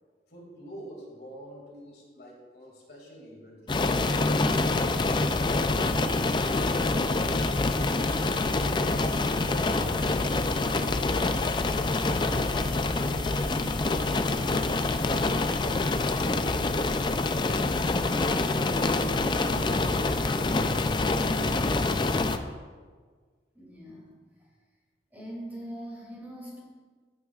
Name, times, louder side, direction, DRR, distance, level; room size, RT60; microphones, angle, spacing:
voice 1, 0.3-4.6 4.9-6.3 6.7-8.4 9.0-13.5 13.9-17.2 17.8-22.1, equal, 60° left, -2 dB, 2.3 m, -45 dB
sound 1, 3.7-22.4, left 3 dB, 25° left, 0.4 m, -26 dB
sound 2, 5.2-15.9, right 1 dB, 75° right, 3.0 m, -49 dB
voice 2, 23.5-24.1 24.4-24.5 25.1-26.6, equal, 10° right, -5 dB, 2.5 m, -41 dB
15.5 x 8.1 x 2.4 m, 1.5 s
head